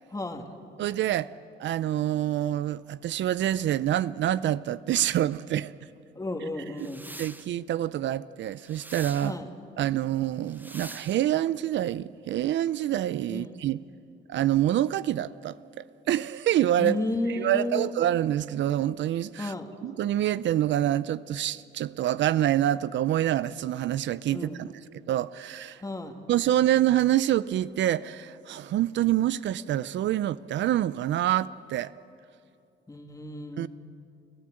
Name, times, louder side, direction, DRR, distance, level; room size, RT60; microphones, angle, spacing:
voice 1, 0.1-0.5 6.2-7.1 9.2-9.5 13.3-13.5 16.8-17.9 19.4-19.7 24.3-24.6 25.8-26.1 32.9-33.7, left 2 dB, 15° left, 4 dB, 2.3 m, -32 dB
voice 2, 0.8-1.3 1.6-5.7 6.4-6.9 7.2-9.4 9.8-13.8 14.3-17.0 17.3-19.5 19.8-24.7 25.1-25.8 26.3-31.9 33.6-33.7, right 12 dB, 65° right, 17 dB, 0.5 m, -26 dB
sound 1, 6.8-7.5 8.6-9.3 10.5-11.2, right 1 dB, 10° right, 0.9 m, -44 dB
29.5 x 15.0 x 7.7 m, 2.5 s
cardioid pair, 90°, 20 cm